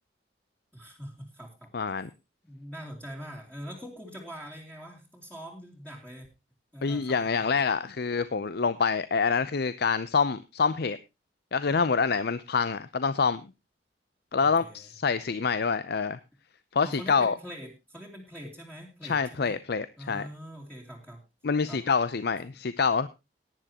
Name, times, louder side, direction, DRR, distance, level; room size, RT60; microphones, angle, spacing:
voice 1, 0.7-1.7 2.4-6.3 6.7-7.2 14.4-14.9 16.8-19.6 20.0-21.2 21.7-21.8, equal, 10° left, -3 dB, 2.9 m, -43 dB
voice 2, 1.7-2.1 6.8-11.0 11.5-13.4 14.3-16.2 16.7-17.4 19.0-20.3 21.4-23.1, left 5 dB, 60° left, 14 dB, 0.6 m, -26 dB
18.0 x 10.0 x 2.9 m, 0.25 s
head